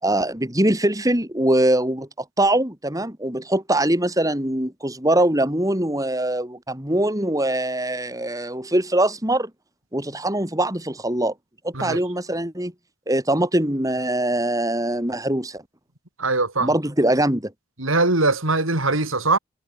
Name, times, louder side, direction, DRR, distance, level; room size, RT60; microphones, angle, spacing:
voice 1, 0.0-2.1 2.4-9.5 9.9-11.3 11.6-12.7 13.1-15.6 16.6-17.5, right 1 dB, 15° right, 5.8 m, -22 dB
voice 2, 16.2-16.7 17.8-19.4, right 3 dB, 85° right, 5.3 m, -21 dB
head